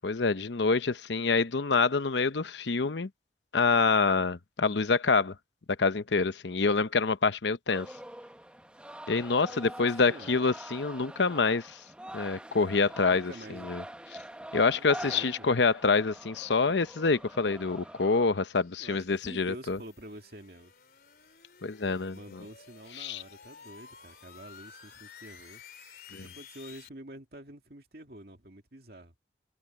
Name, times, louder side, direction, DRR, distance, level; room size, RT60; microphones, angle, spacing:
voice 1, 0.0-3.1 3.5-5.3 5.8-7.9 9.1-11.8 12.1-13.8 14.5-19.8 21.6-22.4 23.0-23.2 26.1-26.3, left 4 dB, 85° left, 0.8 m, -26 dB
sound 1, 7.7-18.3, right 1 dB, 5° right, 0.7 m, -45 dB
voice 2, 9.5-10.5 13.1-13.7 14.6-15.5 18.8-20.7 22.1-25.6 26.1-29.1, right 1 dB, 60° right, 2.5 m, -48 dB
sound 2, 16.2-26.9, left 6 dB, 55° left, 3.8 m, -54 dB
head